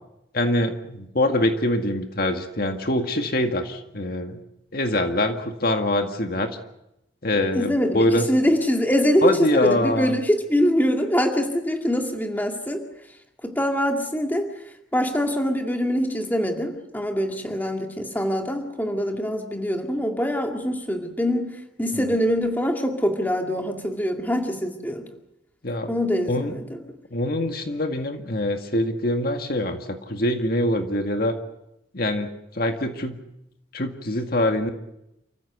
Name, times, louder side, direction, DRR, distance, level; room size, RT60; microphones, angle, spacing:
voice 1, 0.3-4.4 4.7-6.6 7.2-8.2 9.2-10.1 21.9-22.1 25.6-26.0 26.3-26.6 27.1-31.4 31.9-33.1 33.7-34.7, left 1 dB, 50° left, 5 dB, 1.9 m, -24 dB
voice 2, 7.5-12.8 13.4-14.5 14.9-21.5 21.8-25.0 25.9-26.8, equal, 10° left, 3 dB, 2.2 m, -24 dB
29.0 x 15.0 x 8.1 m, 0.86 s
head